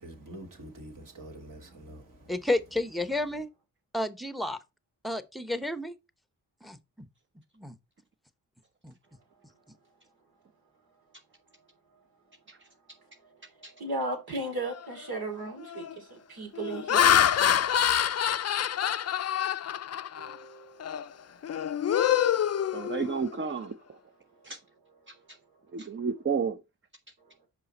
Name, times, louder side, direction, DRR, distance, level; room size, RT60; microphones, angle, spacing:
voice 1, 0.0-2.0, right 1 dB, 60° right, 2.4 m, -45 dB
voice 2, 2.3-3.5 3.9-4.6 5.0-5.9 6.7-6.8 7.6-7.7 8.8-8.9, left 1 dB, ahead, 0.8 m, -31 dB
voice 3, 13.0-17.2 17.4-18.3 18.7-19.2 19.6-21.5 21.8-21.9 22.6-22.7 23.0-23.1 24.3-24.4 25.1-25.3 27.2-27.5, right 2 dB, 75° right, 2.7 m, -39 dB
Laughter, 14.8-15.1 15.6-15.9 16.5-20.4 20.8-21.0 21.4-23.4, left 10 dB, 45° left, 0.5 m, -26 dB
voice 4, 22.7-23.8 24.4-24.6 25.1-25.2 25.7-26.6, right 5 dB, 30° right, 0.7 m, -31 dB
5.5 x 5.1 x 4.2 m
supercardioid pair, 45°, 37 cm